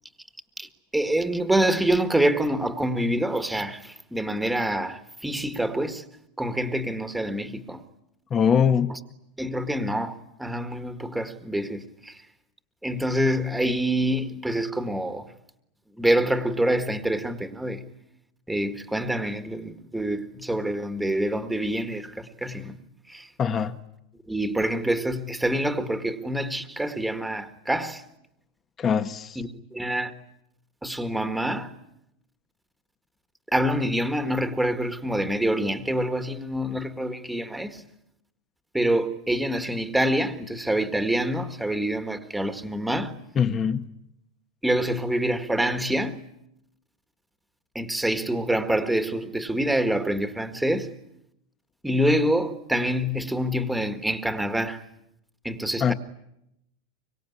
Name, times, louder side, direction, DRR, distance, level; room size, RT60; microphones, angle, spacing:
voice 1, 0.9-6.0 6.4-7.8 8.9-9.0 9.4-12.2 12.8-15.3 16.0-17.8 18.5-22.8 23.1-23.3 24.3-28.0 29.3-30.1 30.8-31.7 33.5-37.8 38.7-43.2 44.6-46.2 47.7-50.9 51.8-54.8 55.4-55.9, right 1 dB, 5° right, 1.7 m, -26 dB
voice 2, 8.3-8.9 23.4-23.7 28.8-29.4 43.4-43.8 55.8-55.9, left 7 dB, 25° left, 1.2 m, -22 dB
24.5 x 24.0 x 9.7 m
supercardioid pair, 155°, 0 cm